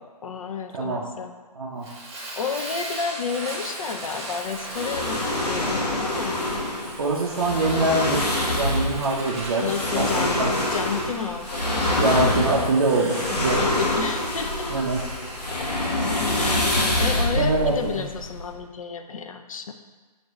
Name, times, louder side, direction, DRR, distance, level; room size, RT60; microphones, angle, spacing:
voice 1, 0.2-1.3 2.2-6.4 9.6-11.6 13.3-14.7 15.5-15.7 16.3-19.7, left 6 dB, 55° left, 6 dB, 0.4 m, -31 dB
voice 2, 1.6-1.9 7.0-8.2 8.6-10.5 12.0-13.6 14.7-15.1 17.4-18.0, right 2 dB, 40° right, -5 dB, 0.5 m, -24 dB
Fire, 1.8-16.4, right 1 dB, 20° right, 1.0 m, -38 dB
sound 1, 4.7-18.6, left 1 dB, 75° left, 1.0 m, -26 dB
6.0 x 2.6 x 3.0 m, 1.3 s
figure-of-eight pair, 150°, 21 cm